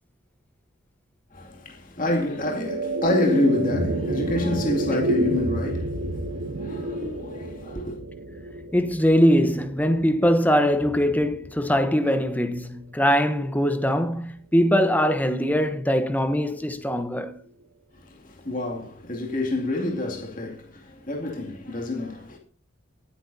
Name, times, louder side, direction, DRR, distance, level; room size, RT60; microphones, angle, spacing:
voice 1, 1.3-8.0 17.9-22.4, left 2 dB, 40° left, 2.4 m, -28 dB
sound 1, 2.1-12.6, right 1 dB, 85° right, 1.8 m, -30 dB
voice 2, 8.7-17.4, equal, 10° left, 0.9 m, -22 dB
20.5 x 9.7 x 2.7 m
head